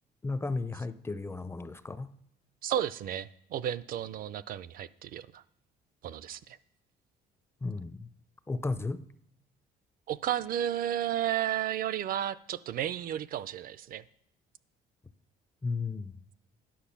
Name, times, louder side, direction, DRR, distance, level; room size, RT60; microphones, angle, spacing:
voice 1, 0.2-2.1 7.6-8.1 8.5-9.0 15.6-16.1, left 3 dB, 15° left, 13 dB, 0.5 m, -34 dB
voice 2, 2.6-5.4 6.0-6.6 10.1-14.0, right 11 dB, 60° right, 17 dB, 0.5 m, -33 dB
10.0 x 6.5 x 5.7 m, 0.77 s
cardioid pair, 110°, 17 cm